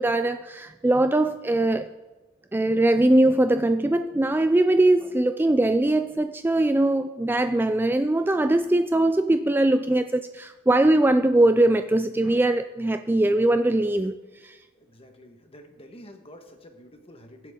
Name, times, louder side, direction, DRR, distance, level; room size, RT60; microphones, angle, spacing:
voice 1, 0.0-1.9 2.5-14.6, right 1 dB, 10° right, 9 dB, 0.3 m, -21 dB
voice 2, 14.7-17.5, equal, 30° left, 5 dB, 1.5 m, -48 dB
22.5 x 8.1 x 3.8 m, 1.2 s
head